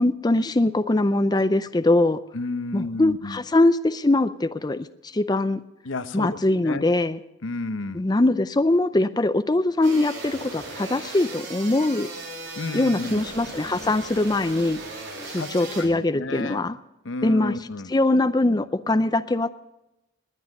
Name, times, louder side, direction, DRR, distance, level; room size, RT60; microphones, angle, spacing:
voice 1, 0.0-2.2 2.7-5.6 6.1-7.2 7.9-12.1 12.7-14.8 15.3-16.8 17.2-17.5 17.9-19.5, left 2 dB, 20° left, 11 dB, 0.4 m, -22 dB
voice 2, 2.3-3.4 5.8-6.4 6.6-6.8 7.4-8.0 12.6-13.2 15.3-15.5 15.8-16.6 17.0-17.9, left 3 dB, 80° left, 12 dB, 0.9 m, -31 dB
sound 1, 9.8-15.8, right 2 dB, 70° right, 7.3 m, -37 dB
20.0 x 9.6 x 6.5 m, 0.94 s
head